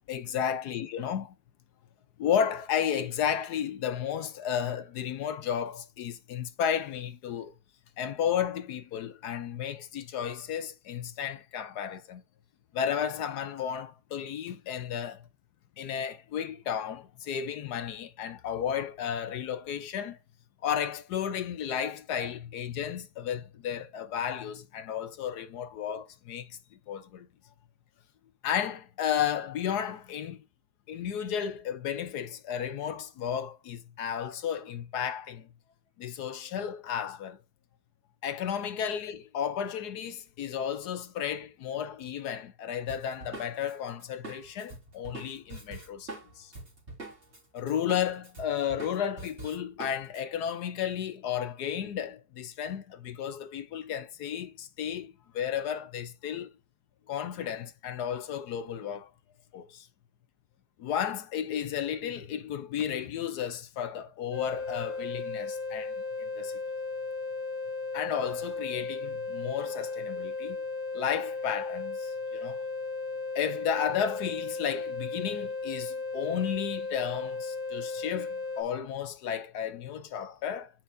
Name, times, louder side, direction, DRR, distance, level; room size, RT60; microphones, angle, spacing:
voice 1, 0.1-1.3 2.2-7.5 8.0-12.2 12.7-15.2 15.8-20.2 20.6-26.6 26.9-27.3 28.4-30.4 30.9-35.5 36.0-37.4 38.2-46.1 46.4-46.5 47.5-56.5 57.1-59.1 59.5-59.9 60.8-66.6 67.9-70.6 70.9-72.6 73.3-80.7, left 8 dB, 65° left, 1.1 m, -33 dB
Drum kit, 42.9-47.4 47.7-50.2, right 2 dB, 35° right, 3.1 m, -44 dB
sound 1, 64.3-78.6, left 3 dB, 60° right, 1.6 m, -35 dB
8.8 x 5.8 x 2.7 m
omnidirectional pair, 2.1 m